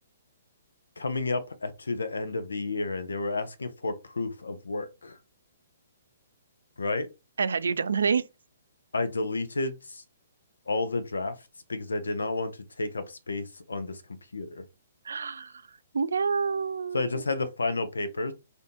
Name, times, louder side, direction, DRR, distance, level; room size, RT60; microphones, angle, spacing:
voice 1, 1.0-5.2 6.8-7.1 8.9-10.0 10.7-11.4 11.7-14.0 14.3-14.6 16.9-18.3, left 3 dB, 85° left, 0.6 m, -31 dB
voice 2, 7.4-8.2 15.0-15.5 15.9-17.2, right 5 dB, 80° right, 0.3 m, -27 dB
3.4 x 2.6 x 2.8 m
hypercardioid pair, 135°, 0 cm